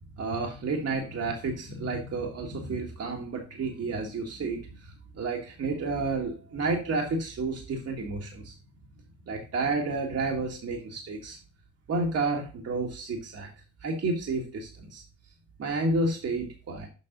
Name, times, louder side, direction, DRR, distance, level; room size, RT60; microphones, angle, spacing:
voice 1, 0.1-8.6 9.3-11.4 11.9-13.5 13.8-15.0 15.6-16.9, right 3 dB, 55° right, 0 dB, 1.7 m, -31 dB
7.7 x 5.3 x 3.8 m, 0.34 s
cardioid pair, 90°, 30 cm